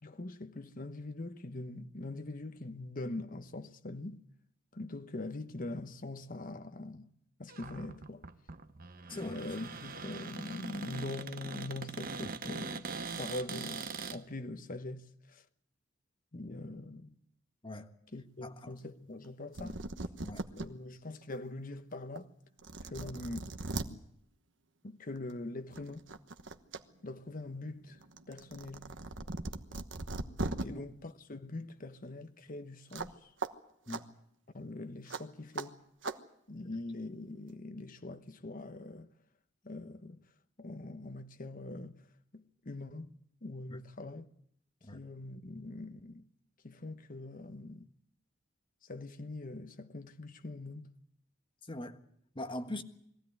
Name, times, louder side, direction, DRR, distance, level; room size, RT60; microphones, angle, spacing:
voice 1, 0.0-4.2 4.7-7.1 7.4-8.2 9.1-12.9 13.2-15.4 16.3-17.1 18.1-19.7 20.6-22.3 22.8-23.5 23.9-24.0 24.8-26.1 27.0-28.0 28.3-28.8 30.4-33.3 34.5-35.8 36.5-39.1 39.6-40.2 40.6-42.0 42.3-44.2 44.9-46.3 46.6-47.9 48.8-50.9, left 2 dB, 45° left, 1.1 m, -43 dB
Cupboard open or close, 7.5-14.2, right 4 dB, 50° right, 1.0 m, -42 dB
voice 2, 18.4-18.7 19.6-19.8 20.2-20.5 30.7-30.9 33.9-34.1 43.7-43.8 44.8-45.0 51.6-52.0 52.3-52.8, left 1 dB, 25° left, 1.5 m, -42 dB
sound 1, 19.3-19.4 19.5-20.7 21.2-21.3 22.2-22.3 22.6-23.9 25.2-25.3 25.7-26.8 27.1-30.6 32.9-33.1 33.4-33.5 33.9-34.0 35.1-35.2 35.6-35.7 36.0-36.2, right 2 dB, 70° right, 1.2 m, -39 dB
22.0 x 16.0 x 9.4 m
head